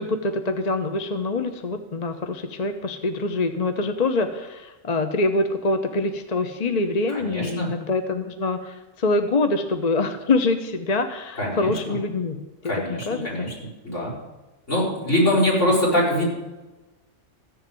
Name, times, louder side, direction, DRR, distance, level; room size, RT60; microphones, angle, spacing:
voice 1, 0.0-12.4 13.1-13.3, left 2 dB, 35° left, 7 dB, 0.9 m, -25 dB
voice 2, 7.1-7.7 11.4-12.0 12.6-13.5 13.8-14.1 14.7-16.2, left 1 dB, 65° left, -5 dB, 5.9 m, -23 dB
14.5 x 7.2 x 9.1 m, 1.1 s
omnidirectional pair, 1.3 m